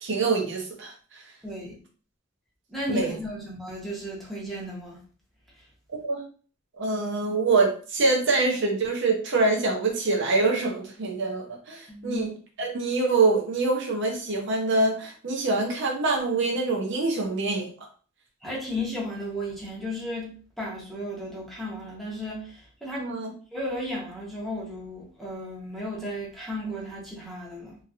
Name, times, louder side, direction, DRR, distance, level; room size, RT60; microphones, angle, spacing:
voice 1, 0.0-1.2 2.9-3.1 6.0-6.2 6.8-12.3 12.6-17.7 23.0-23.3, right 3 dB, 60° right, 1 dB, 0.7 m, -25 dB
voice 2, 1.4-1.7 2.7-5.0 11.9-12.3 18.4-23.1 23.5-27.8, left 1 dB, ahead, -4 dB, 0.9 m, -34 dB
2.9 x 2.9 x 2.5 m, 0.40 s
head